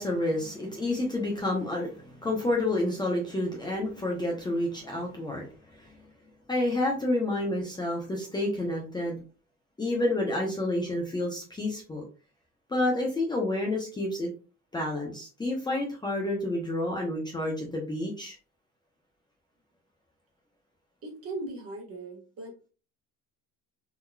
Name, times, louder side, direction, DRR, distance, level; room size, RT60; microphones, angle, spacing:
voice 1, 0.0-5.5 5.8-5.9 6.5-9.2 9.8-12.0 12.7-14.3 14.7-18.3, left 1 dB, 15° left, -1 dB, 0.7 m, -29 dB
voice 2, 21.0-22.7, right 2 dB, 40° right, -1 dB, 1.4 m, -39 dB
3.8 x 2.8 x 2.3 m, 0.34 s
cardioid pair, 150°, 34 cm